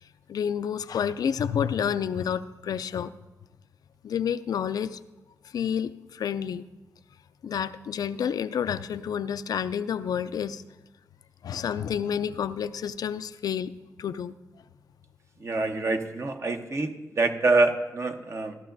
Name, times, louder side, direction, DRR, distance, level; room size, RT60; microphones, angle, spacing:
voice 1, 0.3-3.1 4.0-5.0 5.5-6.6 7.4-10.6 11.4-13.7 14.0-14.3, left 8 dB, 70° left, 13 dB, 0.4 m, -29 dB
voice 2, 15.4-18.6, right 3 dB, 45° right, 6 dB, 0.9 m, -26 dB
15.0 x 11.5 x 2.6 m, 1.1 s
cardioid pair, 60°, 7 cm